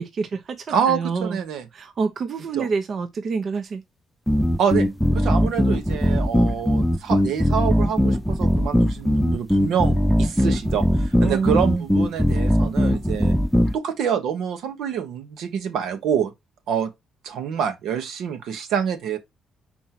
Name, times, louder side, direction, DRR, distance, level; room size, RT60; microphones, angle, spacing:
voice 1, 0.0-1.4 1.7-3.8 11.2-11.9, right 5 dB, 55° right, 0.8 m, -27 dB
voice 2, 0.7-1.6 2.5-2.7 4.6-4.9 5.1-13.3 13.7-16.3 16.7-16.9 17.2-19.2, right 8 dB, 80° right, 1.2 m, -26 dB
sound 1, 4.3-13.7, equal, ahead, 0.6 m, -20 dB
4.5 x 4.3 x 5.8 m
cardioid pair, 90°, 0 cm